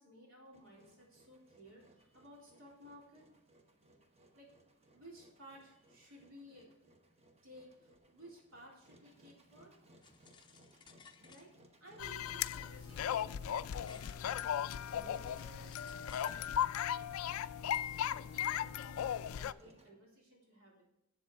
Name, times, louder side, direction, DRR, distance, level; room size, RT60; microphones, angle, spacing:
voice 1, 0.0-3.3 4.3-4.5 4.9-6.7 7.4-9.7 11.2-14.4 14.9-16.6 17.8-20.8, equal, 80° right, -3 dB, 3.7 m, -57 dB
Engine, 0.5-19.9, right 1 dB, 30° right, 0.9 m, -65 dB
sound 1, 10.0-11.7 12.0-14.2 14.7-16.4, left 6 dB, 20° left, 0.5 m, -61 dB
sound 2, 12.0-19.5, left 9 dB, 90° left, 0.3 m, -37 dB
7.8 x 7.3 x 4.7 m, 0.92 s
head